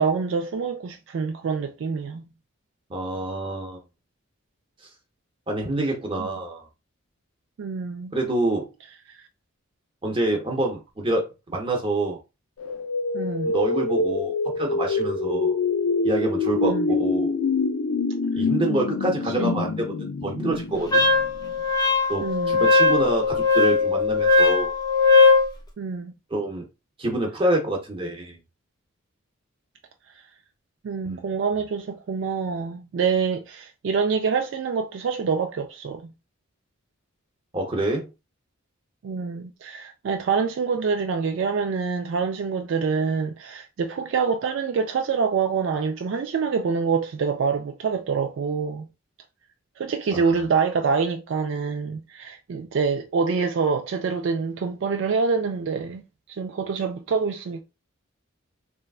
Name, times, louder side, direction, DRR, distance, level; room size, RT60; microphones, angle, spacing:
voice 1, 0.0-2.2 6.2-6.3 7.6-8.1 13.1-13.5 16.6-16.9 19.4-19.6 22.2-22.7 25.8-26.1 30.8-36.1 39.0-48.9 49.8-56.0 56.4-57.6, right 5 dB, 60° right, 0.3 m, -26 dB
voice 2, 2.9-3.8 5.5-6.6 8.1-8.7 10.0-12.2 13.4-15.5 16.0-17.4 18.3-21.1 22.1-24.7 26.3-26.7 27.0-28.4 31.0-31.2 37.5-38.1 50.1-50.3, right 1 dB, 25° right, 0.7 m, -27 dB
sound 1, 12.6-21.5, left 3 dB, 65° left, 0.4 m, -26 dB
Wind instrument woodwind instrument, 20.9-25.5, left 3 dB, 20° left, 0.6 m, -19 dB
3.1 x 2.3 x 2.3 m
head